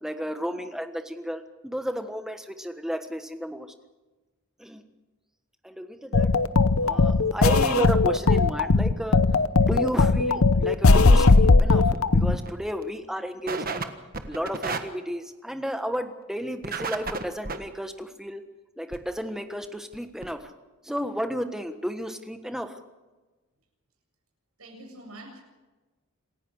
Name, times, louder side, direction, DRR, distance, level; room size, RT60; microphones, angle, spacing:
voice 1, 0.0-3.7 4.6-4.9 5.6-6.3 6.8-9.2 9.7-13.9 14.3-18.4 18.8-20.5 20.8-22.7, equal, ahead, 7 dB, 1.3 m, -33 dB
sound 1, 6.1-12.4, left 3 dB, 70° left, 0.9 m, -18 dB
sound 2, 11.6-12.0 12.4-12.5 12.8-12.9 13.5-13.9 14.1-14.8 16.6-17.6 18.9-19.0 19.6-19.7 19.9-20.0 20.2-20.3, right 4 dB, 40° right, 1.5 m, -32 dB
voice 2, 24.6-25.4, right 1 dB, 80° right, 2 dB, 7.6 m, -44 dB
27.5 x 15.5 x 6.5 m, 1.2 s
head